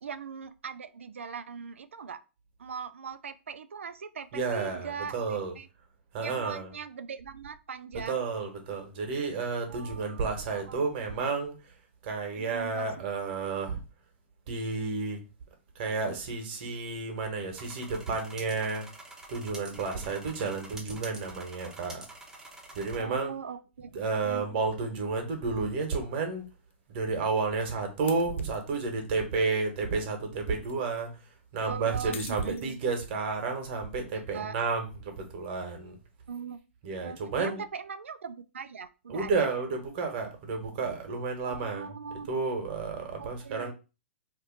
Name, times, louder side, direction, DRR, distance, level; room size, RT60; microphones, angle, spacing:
voice 1, 0.0-2.2 2.6-5.7 6.2-8.2 9.7-10.2 10.5-10.8 11.2-11.3 12.3-12.9 23.0-24.4 31.6-32.8 34.1-34.6 36.3-36.6 37.0-39.5 41.5-42.3 43.2-43.7, right 6 dB, 85° right, 12 dB, 0.3 m, -40 dB
voice 2, 4.3-5.5 6.1-6.7 7.9-11.7 12.0-13.8 14.5-15.2 15.7-18.9 19.3-22.1 22.7-23.3 23.9-26.4 26.9-31.2 31.5-35.9 36.8-37.6 39.1-41.9 42.3-43.7, right 4 dB, 50° right, 4 dB, 1.2 m, -31 dB
sound 1, 17.5-23.0, right 2 dB, 10° right, 0.8 m, -47 dB
sound 2, 25.4-25.5 26.7-26.8 28.1-28.9 30.3-30.8 32.1-33.1, left 6 dB, 75° left, 0.5 m, -46 dB
2.7 x 2.4 x 3.9 m, 0.31 s
hypercardioid pair, 115°, 7 cm